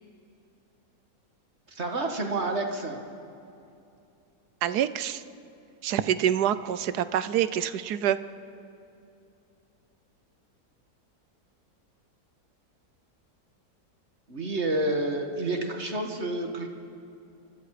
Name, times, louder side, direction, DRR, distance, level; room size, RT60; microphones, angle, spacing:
voice 1, 1.7-3.0 14.3-16.7, right 2 dB, 45° right, 3 dB, 2.1 m, -29 dB
voice 2, 4.6-5.2 5.8-8.2, right 10 dB, 80° right, 14 dB, 1.3 m, -26 dB
29.5 x 24.0 x 5.0 m, 2.7 s
omnidirectional pair, 1.7 m